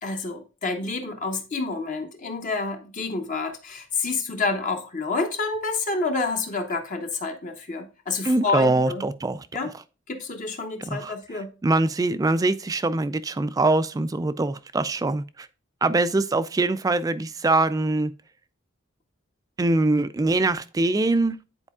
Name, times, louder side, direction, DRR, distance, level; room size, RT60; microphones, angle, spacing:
voice 1, 0.0-9.0 9.5-9.7 10.1-11.5, left 3 dB, 40° left, 0.8 m, -28 dB
voice 2, 8.2-9.5 10.9-11.1 11.6-15.5 15.8-18.1 19.6-21.4, right 2 dB, 20° right, 0.3 m, -23 dB
9.7 x 4.4 x 2.3 m
head